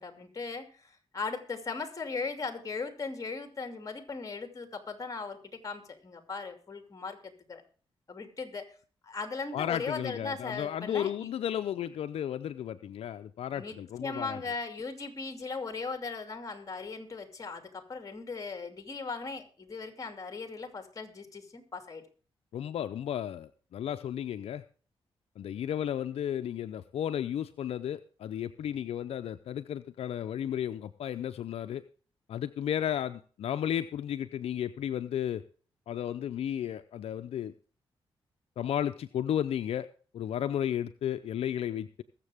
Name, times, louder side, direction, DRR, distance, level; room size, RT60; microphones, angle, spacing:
voice 1, 0.0-7.6 8.1-8.7 9.0-11.3 13.5-22.1, left 4 dB, 35° left, 7 dB, 2.7 m, -38 dB
voice 2, 9.5-14.4 22.5-24.6 25.4-31.8 32.3-35.4 35.9-37.5 38.6-39.9 40.1-42.0, left 10 dB, 80° left, 10 dB, 0.6 m, -33 dB
21.5 x 7.4 x 3.5 m, 0.39 s
cardioid pair, 75°, 10 cm